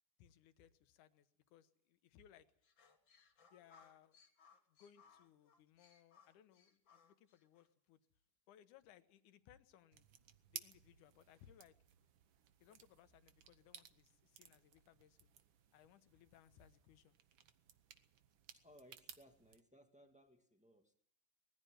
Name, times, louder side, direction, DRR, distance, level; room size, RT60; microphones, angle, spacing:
voice 1, 0.2-2.5 3.5-4.2 4.7-8.0 8.5-10.1 10.5-11.8 12.6-15.3 15.7-17.2, left 10 dB, 75° left, 11 dB, 2.5 m, -66 dB
sound 1, 2.6-7.7, left 5 dB, 45° left, 2.2 m, -68 dB
sound 2, 9.9-19.6, right 9 dB, 75° right, 1.1 m, -59 dB
voice 2, 18.5-20.9, equal, 5° right, 4 dB, 0.8 m, -65 dB
20.5 x 14.5 x 9.1 m, 0.65 s
omnidirectional pair, 3.6 m